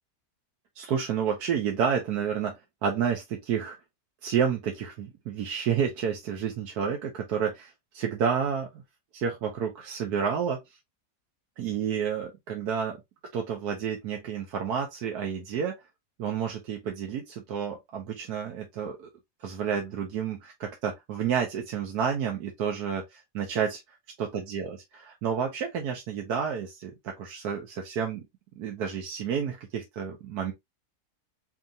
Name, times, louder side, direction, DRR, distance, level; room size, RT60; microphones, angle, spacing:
voice 1, 0.8-2.6 2.8-3.8 4.2-8.7 9.1-10.6 11.6-13.0 13.3-15.7 16.2-19.1 19.4-23.8 24.2-28.2 28.6-30.5, right 7 dB, 80° right, 1.3 m, -30 dB
4.6 x 2.9 x 2.7 m
omnidirectional pair, 1.7 m